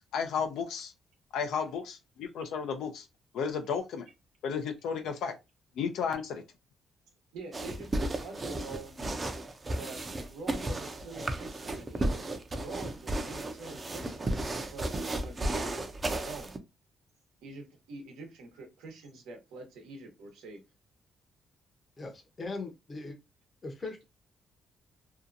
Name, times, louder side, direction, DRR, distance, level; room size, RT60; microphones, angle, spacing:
voice 1, 0.1-0.9 1.3-3.1 3.3-4.1 4.4-5.3 5.8-6.4, left 6 dB, 80° left, 0.5 m, -33 dB
voice 2, 7.3-8.9 9.8-10.0 10.3-12.2 12.5-16.5 17.4-20.6, right 3 dB, 90° right, 0.9 m, -45 dB
sound 1, 7.5-16.6, right 1 dB, 30° right, 0.5 m, -34 dB
voice 3, 22.0-23.2 23.6-24.0, left 3 dB, 35° left, 0.7 m, -39 dB
2.7 x 2.3 x 2.5 m
cardioid pair, 90°, 0 cm